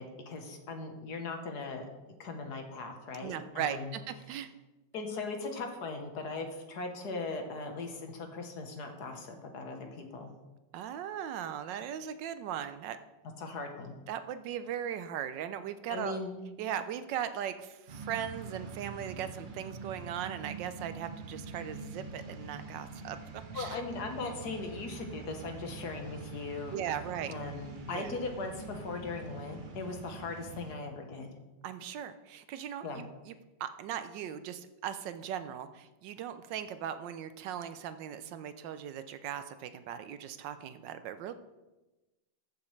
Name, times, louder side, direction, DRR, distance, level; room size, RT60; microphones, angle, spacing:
voice 1, 0.0-3.9 4.9-10.3 13.4-13.9 15.9-16.4 23.5-26.8 27.3-31.3 32.8-33.1, left 3 dB, 60° left, 4 dB, 1.6 m, -39 dB
voice 2, 3.2-4.5 10.7-13.0 14.1-16.2 16.6-23.8 26.7-27.3 27.9-28.1 31.6-33.3 33.6-41.3, right 9 dB, 75° right, 11 dB, 1.2 m, -38 dB
sound 1, 17.9-30.7, right 4 dB, 45° right, 0.6 m, -45 dB
14.0 x 7.2 x 3.2 m, 1.1 s
omnidirectional pair, 2.1 m